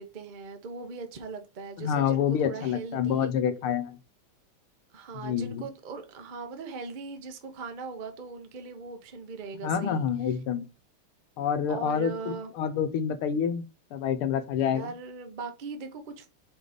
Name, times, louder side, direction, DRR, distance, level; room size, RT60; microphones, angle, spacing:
voice 1, 0.0-3.3 4.9-10.1 11.7-12.5 14.6-16.3, right 4 dB, 40° right, 0.6 m, -39 dB
voice 2, 1.8-4.0 5.2-5.6 9.6-10.7 11.4-13.6 13.9-14.9, left 8 dB, 85° left, 1.6 m, -27 dB
5.2 x 3.9 x 5.1 m
omnidirectional pair, 2.4 m